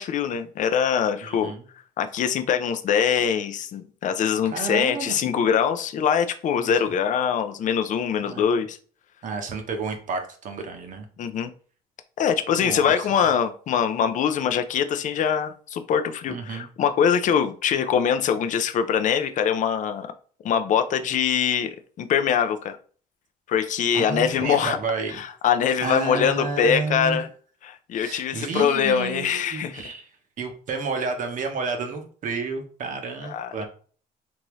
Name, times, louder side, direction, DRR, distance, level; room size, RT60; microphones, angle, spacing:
voice 1, 0.0-1.5 2.0-8.8 11.2-11.5 12.2-20.1 20.4-22.8 23.5-24.8 25.1-27.3 27.6-29.9 33.2-33.7, left 8 dB, 50° left, 8 dB, 0.5 m, -23 dB
voice 2, 1.2-1.6 4.4-5.1 6.6-6.7 8.2-8.4 9.2-11.0 12.5-13.1 16.3-16.7 23.9-25.2 25.8-27.2 27.9-30.1 30.4-33.7, right 4 dB, 50° right, 5 dB, 0.8 m, -31 dB
3.4 x 2.7 x 3.0 m, 0.43 s
cardioid pair, 110°, 17 cm